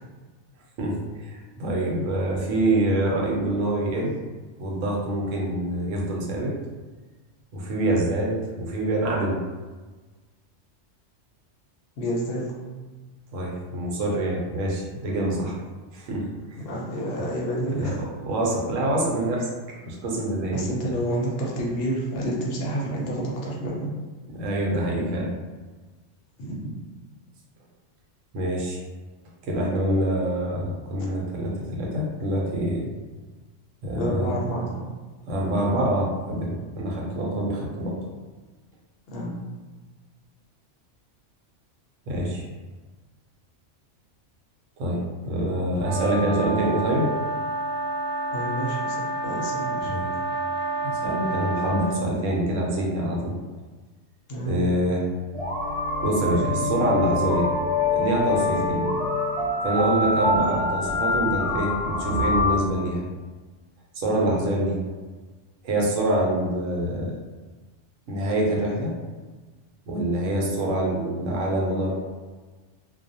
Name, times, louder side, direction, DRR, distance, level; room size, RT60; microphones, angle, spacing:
voice 1, 0.8-4.1 4.6-6.5 7.5-9.4 13.3-15.6 15.9-16.3 16.5-16.6 17.8-17.9 18.2-19.5 19.8-20.6 24.3-25.3 28.3-28.8 29.4-32.9 33.8-34.3 35.3-38.0 42.1-42.5 44.8-47.1 49.8-50.1 50.8-53.4 54.5-55.1 56.0-57.5 57.9-58.9 59.6-63.0 63.9-64.8 65.6-67.1 68.1-68.9 69.9-71.9, right 1 dB, 90° right, -2 dB, 1.0 m, -25 dB
voice 2, 12.0-12.5 16.6-18.0 20.5-23.9 26.4-26.7 34.0-34.9 39.1-39.4 48.3-49.9 54.3-54.5 64.1-64.3, right 1 dB, 60° left, -4 dB, 0.7 m, -29 dB
sound 1, 45.8-52.0, right 2 dB, 65° right, 0.7 m, -29 dB
sound 2, 55.3-62.6, left 2 dB, 35° right, 0.9 m, -25 dB
2.3 x 2.0 x 2.6 m, 1.3 s
omnidirectional pair, 1.3 m